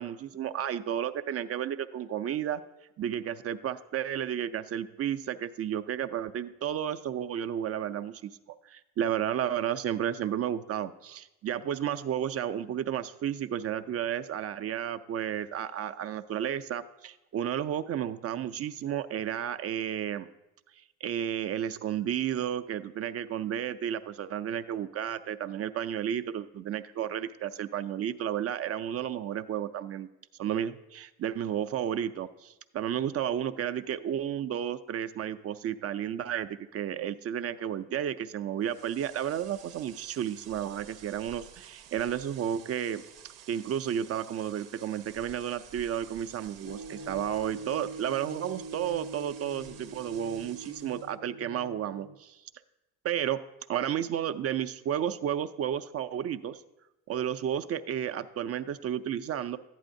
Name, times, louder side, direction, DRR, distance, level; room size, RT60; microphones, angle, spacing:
voice 1, 0.0-2.6 3.0-8.3 8.6-20.3 21.0-30.1 30.4-43.0 43.5-52.4 53.0-53.4 53.7-56.6 57.1-59.6, right 10 dB, 40° right, 11 dB, 0.4 m, -32 dB
sound 1, 38.6-51.1, right 9 dB, 85° right, 0.7 m, -52 dB
sound 2, 46.6-52.2, right 3 dB, 40° left, 0.6 m, -43 dB
11.0 x 9.1 x 2.6 m, 0.95 s
supercardioid pair, 80°, 38 cm